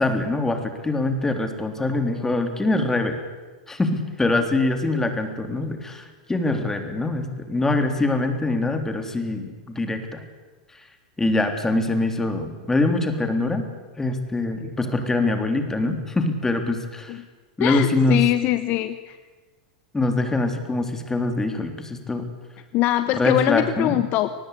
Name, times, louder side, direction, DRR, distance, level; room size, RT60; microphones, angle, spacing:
voice 1, 0.0-3.2 3.7-10.2 10.7-10.8 11.2-13.6 14.0-17.2 17.6-18.2 19.9-22.3 23.1-24.0, left 2 dB, 10° left, 6 dB, 3.6 m, -24 dB
voice 2, 17.6-19.2 22.7-24.3, left 14 dB, 45° left, 11 dB, 1.1 m, -22 dB
23.5 x 20.0 x 8.5 m, 1.3 s
hypercardioid pair, 105°, 4 cm